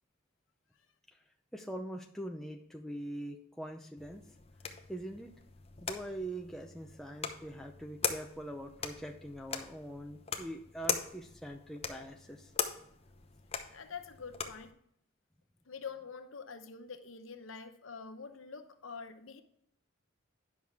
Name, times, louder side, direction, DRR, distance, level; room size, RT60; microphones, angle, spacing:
voice 1, 1.5-4.2 4.9-5.3 5.8-12.5, right 1 dB, ahead, 2 dB, 0.5 m, -43 dB
sound 1, 4.0-14.7, left 6 dB, 30° left, 0.8 m, -41 dB
voice 2, 13.7-14.7 15.7-19.4, left 5 dB, 75° left, 8 dB, 0.8 m, -46 dB
10.5 x 6.2 x 3.5 m, 0.70 s
head